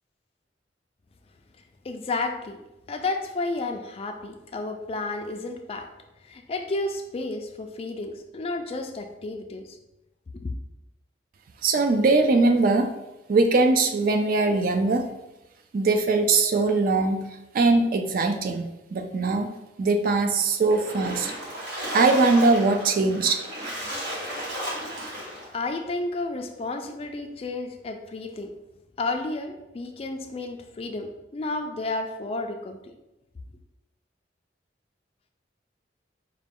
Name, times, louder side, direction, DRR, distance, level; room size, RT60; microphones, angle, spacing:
voice 1, 1.8-2.6 2.9-5.9 6.2-9.8 10.3-10.5 24.0-24.1 25.5-28.5 29.0-32.9, left 2 dB, 30° left, 5 dB, 0.3 m, -32 dB
voice 2, 11.6-12.9 13.3-15.0 15.7-17.2 17.5-19.5 19.8-21.3 21.9-23.4, right 3 dB, 50° right, 6 dB, 0.3 m, -21 dB
Splash splatter, 20.7-25.5, equal, 80° right, 1.3 m, -34 dB
4.8 x 2.2 x 3.5 m, 0.97 s
head